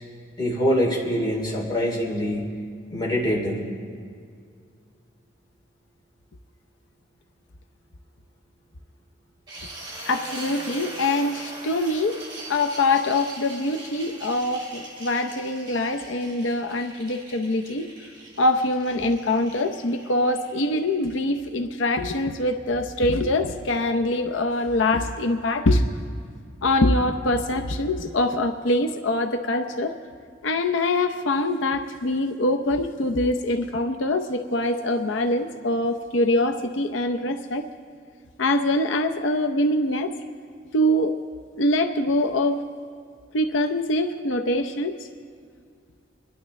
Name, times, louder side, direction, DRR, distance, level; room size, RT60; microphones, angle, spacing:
voice 1, 0.4-2.4 2.9-3.6, equal, 25° left, -4 dB, 2.7 m, -24 dB
sound 1, 9.5-21.4, right 1 dB, 25° right, 3.1 m, -41 dB
voice 2, 10.1-12.2 12.5-17.9 18.4-25.8 26.6-29.9 30.4-37.6 38.4-40.2 40.7-41.2 41.6-42.6 43.3-45.0, left 1 dB, 90° left, 6 dB, 0.7 m, -24 dB
25.0 x 11.5 x 3.2 m, 2.2 s
head